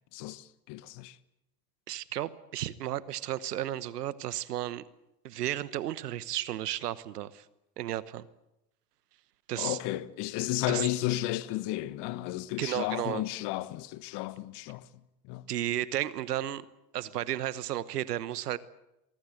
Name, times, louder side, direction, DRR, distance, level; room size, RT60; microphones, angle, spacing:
voice 1, 0.1-1.2 9.6-14.9 15.2-15.5, left 16 dB, 60° left, 1.4 m, -33 dB
voice 2, 1.9-4.8 5.2-7.4 7.8-8.3 9.5-9.8 10.7-10.9 12.6-13.2 15.5-16.6 16.9-18.6, right 13 dB, 90° right, 1.1 m, -33 dB
23.5 x 22.5 x 7.9 m
hypercardioid pair, 75°, 46 cm